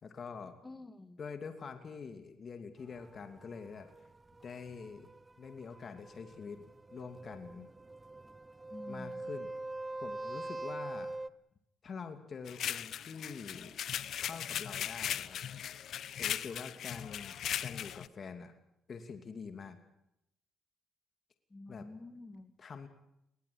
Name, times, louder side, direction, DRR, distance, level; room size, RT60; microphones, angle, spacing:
voice 1, 0.0-0.6 1.2-3.9 4.4-5.1 5.4-7.7 8.9-9.5 10.0-11.2 11.8-13.8 14.2-15.4 16.2-18.5 18.9-19.8 21.7-21.9 22.6-22.9, left 5 dB, 45° left, 7 dB, 2.7 m, -45 dB
voice 2, 0.6-1.2 8.7-9.3 21.5-22.5, left 2 dB, 20° left, 13 dB, 2.0 m, -49 dB
sound 1, 2.8-11.3, right 2 dB, 20° right, 0.9 m, -45 dB
sound 2, 12.5-18.1, left 10 dB, 70° left, 0.9 m, -38 dB
22.0 x 19.0 x 8.7 m, 0.81 s
cardioid pair, 90°, 0 cm